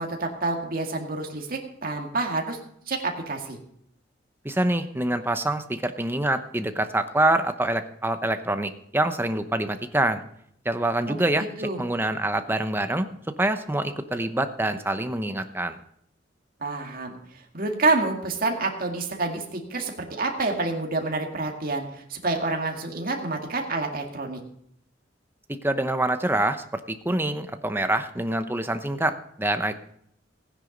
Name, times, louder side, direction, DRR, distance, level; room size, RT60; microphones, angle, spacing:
voice 1, 0.0-2.6 2.9-3.6 11.1-11.2 11.6-11.8 16.6-17.2 17.5-24.4, right 3 dB, 50° right, 2 dB, 2.1 m, -28 dB
voice 2, 4.4-10.2 10.6-13.1 13.4-15.8 25.6-29.7, right 1 dB, 10° right, 9 dB, 0.9 m, -26 dB
16.0 x 9.9 x 5.2 m, 0.70 s
head